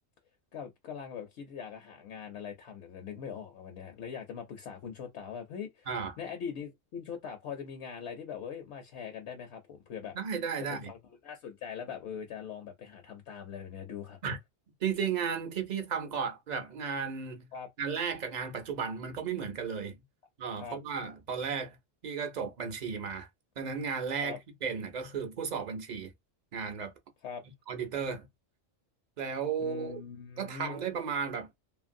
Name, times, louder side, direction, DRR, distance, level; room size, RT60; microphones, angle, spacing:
voice 1, 0.5-5.9 6.2-10.2 10.7-11.0 11.2-14.2 17.5-17.7 20.6-20.8 24.2-24.4 27.2-27.4 29.6-30.8, left 7 dB, 65° left, 0.8 m, -42 dB
voice 2, 5.9-6.2 10.1-10.9 14.2-14.4 14.8-17.5 17.8-20.0 20.4-21.8 22.0-23.3 23.6-26.1 26.5-26.9 27.7-28.2 29.2-30.0 30.4-31.6, right 6 dB, 50° right, 0.6 m, -34 dB
2.7 x 2.5 x 2.6 m
omnidirectional pair, 1.3 m